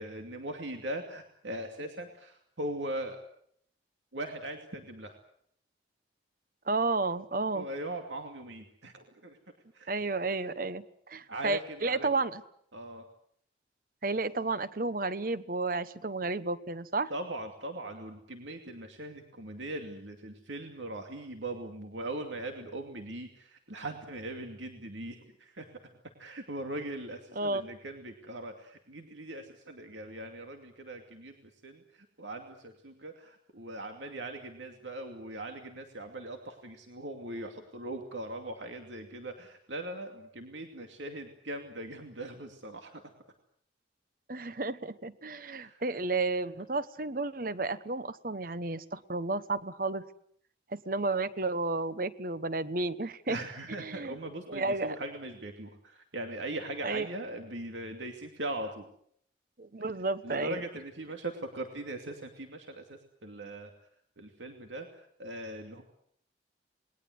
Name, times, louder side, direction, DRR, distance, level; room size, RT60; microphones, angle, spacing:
voice 1, 0.0-3.2 4.1-5.2 7.5-9.4 9.7-9.9 11.3-12.1 12.7-13.1 17.1-25.7 26.2-31.4 31.6-31.8 32.2-43.0 45.4-45.8 53.3-58.9 60.2-63.7 64.2-65.8, right 1 dB, 85° right, 4 dB, 2.6 m, -40 dB
voice 2, 6.7-7.7 9.9-12.4 14.0-17.1 27.3-27.7 44.3-50.0 50.7-53.4 53.8-54.2 54.5-55.0 56.8-57.1 59.6-60.6, right 3 dB, 50° right, 15 dB, 1.0 m, -32 dB
28.0 x 21.0 x 8.0 m, 0.67 s
head